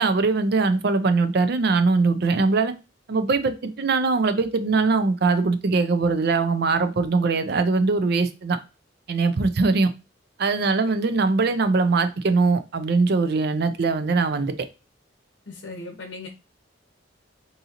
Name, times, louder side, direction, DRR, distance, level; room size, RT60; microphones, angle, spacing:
voice 1, 0.0-2.7 3.1-8.6 9.1-9.9 10.4-14.5, right 3 dB, 60° right, 0.5 m, -21 dB
voice 2, 15.5-16.3, left 3 dB, 70° left, 0.8 m, -38 dB
3.7 x 2.7 x 2.8 m
head